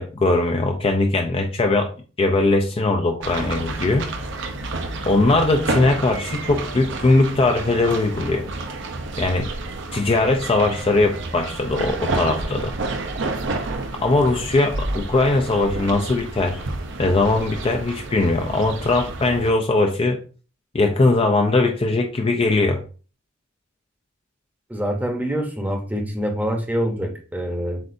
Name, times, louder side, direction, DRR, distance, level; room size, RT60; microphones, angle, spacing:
voice 1, 0.0-1.9 2.2-4.1 5.1-8.4 9.2-9.5 9.9-12.7 14.0-16.6 17.0-20.2 20.7-22.8, left 2 dB, 25° left, 0.4 m, -20 dB
sound 1, 3.2-19.5, right 2 dB, 60° right, 0.6 m, -30 dB
voice 2, 24.7-27.8, equal, 10° right, 0.8 m, -25 dB
7.6 x 2.6 x 2.6 m
head